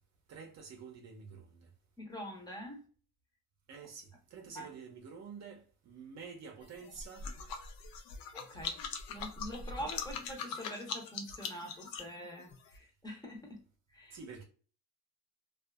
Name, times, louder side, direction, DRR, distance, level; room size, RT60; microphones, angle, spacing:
voice 1, 0.3-1.7 3.7-7.3 14.1-14.4, right 5 dB, 50° right, 0.6 m, -49 dB
voice 2, 2.0-2.9 4.5-4.7 8.3-8.8 9.1-13.6 13.9-14.2, equal, 10° left, 0.7 m, -45 dB
sound 1, 6.6-12.8, left 5 dB, 75° left, 0.6 m, -42 dB
2.5 x 2.4 x 2.3 m
cardioid pair, 135°, 35 cm